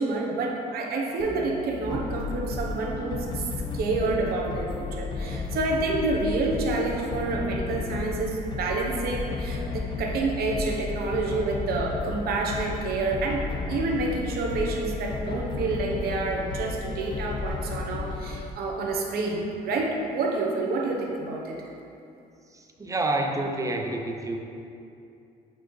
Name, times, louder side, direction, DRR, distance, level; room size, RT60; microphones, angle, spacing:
voice 1, 0.0-3.5 3.7-21.7, right 3 dB, 65° right, -1 dB, 1.0 m, -28 dB
sound 1, 1.2-17.5, left 3 dB, 70° left, 0.9 m, -39 dB
sound 2, 1.9-18.5, left 4 dB, 30° left, 0.4 m, -34 dB
voice 2, 22.5-24.4, right 2 dB, 20° right, 2 dB, 0.6 m, -28 dB
8.3 x 4.2 x 3.2 m, 2.6 s
cardioid pair, 110°, 17 cm